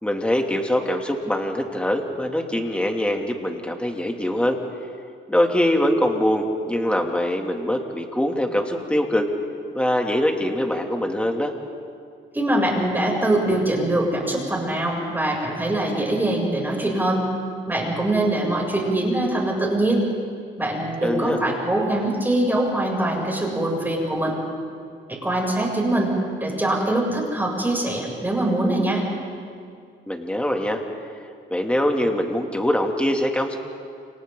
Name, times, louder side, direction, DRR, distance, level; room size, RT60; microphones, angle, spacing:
voice 1, 0.0-4.6 5.3-9.3 9.7-11.5 21.0-21.4 30.1-30.8 31.5-33.6, left 1 dB, 5° left, 2 dB, 2.8 m, -23 dB
voice 2, 12.3-17.2 17.7-20.1 20.6-24.3 25.1-26.1 26.4-29.0, right 1 dB, 10° right, -2 dB, 7.5 m, -23 dB
29.5 x 28.0 x 4.0 m, 2.3 s
cardioid pair, 90°, 20 cm